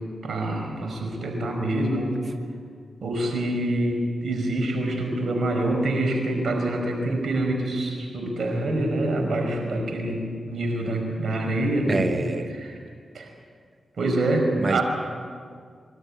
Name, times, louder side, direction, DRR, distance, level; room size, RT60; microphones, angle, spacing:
voice 1, 0.2-2.2 3.0-12.2 12.5-12.8 13.1-13.3 14.0-14.8, right 1 dB, 75° right, 3 dB, 5.2 m, -26 dB
voice 2, 11.9-12.5 14.6-14.8, right 3 dB, 50° right, 7 dB, 1.1 m, -26 dB
25.5 x 12.5 x 9.6 m, 2.1 s
cardioid pair, 55°, 0 cm